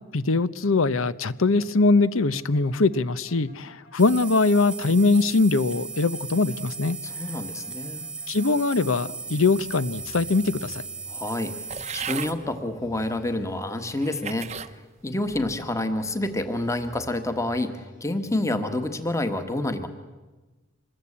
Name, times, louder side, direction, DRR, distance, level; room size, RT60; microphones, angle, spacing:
voice 1, 0.1-7.0 8.3-10.8, left 3 dB, 75° left, 16 dB, 0.9 m, -22 dB
sound 1, 1.2-8.9 9.2-11.4 11.9-14.4 14.9-18.3, right 1 dB, 55° left, 3.0 m, -52 dB
sound 2, 4.0-12.3, right 5 dB, 5° right, 1.3 m, -37 dB
voice 2, 7.0-8.0 11.1-11.5 11.9-14.5 15.0-19.9, left 1 dB, 15° left, 9 dB, 1.4 m, -28 dB
sound 3, 11.7-12.3 13.1-13.2 13.9-14.7 15.3-15.7, right 7 dB, 30° right, 0.8 m, -36 dB
26.0 x 21.0 x 8.6 m, 1.2 s
head